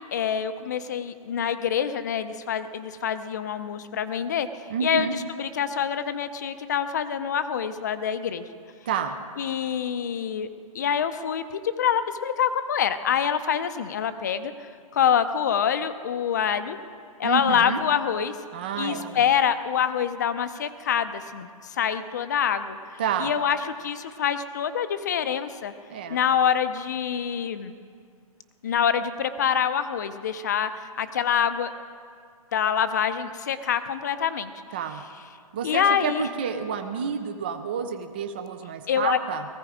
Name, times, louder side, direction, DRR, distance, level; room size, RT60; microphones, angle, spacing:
voice 1, 0.1-8.5 9.4-10.5 10.7-14.5 14.9-16.8 17.2-18.4 18.8-22.8 23.2-25.7 26.1-27.7 28.6-31.7 32.5-34.5 35.6-36.3 38.9-39.2, left 8 dB, 30° left, 11 dB, 0.6 m, -26 dB
voice 2, 4.7-5.2 8.9-9.2 17.2-17.8 18.5-19.2 23.0-23.3 25.9-26.2 34.7-35.0 35.5-39.5, right 7 dB, 15° right, 7 dB, 0.4 m, -29 dB
19.0 x 15.0 x 5.0 m, 2.2 s
hypercardioid pair, 170°, 19 cm